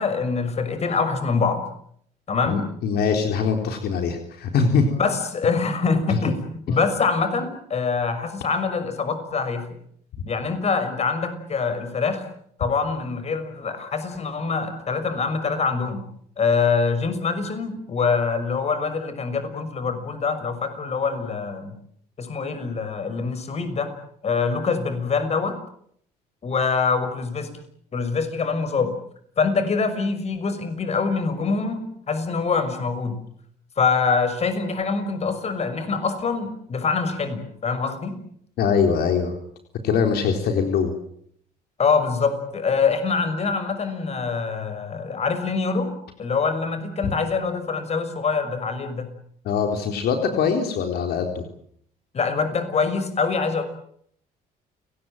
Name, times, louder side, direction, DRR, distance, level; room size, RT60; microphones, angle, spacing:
voice 1, 0.0-1.6 2.3-2.6 4.8-9.7 10.2-12.2 12.6-16.0 16.4-21.7 22.2-23.9 24.2-25.5 26.4-27.5 27.9-28.9 29.4-33.2 33.8-38.2 41.8-45.9 46.2-49.1 52.1-53.6, left 5 dB, 40° left, 10 dB, 6.0 m, -24 dB
voice 2, 2.5-4.8 38.6-39.3 39.8-40.9 47.0-47.1 49.5-51.4, left 6 dB, 70° left, 5 dB, 4.0 m, -22 dB
29.5 x 19.0 x 9.1 m, 0.68 s
cardioid pair, 110°, 17 cm